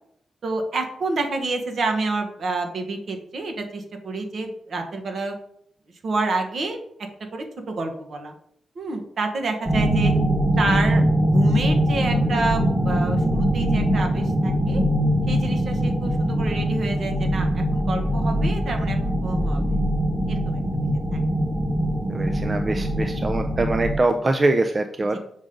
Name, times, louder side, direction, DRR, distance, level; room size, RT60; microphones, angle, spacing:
voice 1, 0.4-5.3 6.0-6.8 7.3-8.3 8.7-10.1 10.6-11.0 11.3-14.8 15.3-19.6 20.3-20.6 21.1-21.2 25.1-25.2, right 3 dB, 60° right, 4 dB, 1.2 m, -28 dB
sound 1, 9.6-23.9, equal, 15° right, 1.3 m, -22 dB
voice 2, 22.1-25.2, right 2 dB, 30° right, 6 dB, 0.5 m, -23 dB
6.3 x 3.8 x 5.2 m, 0.70 s
cardioid pair, 90°, 0 cm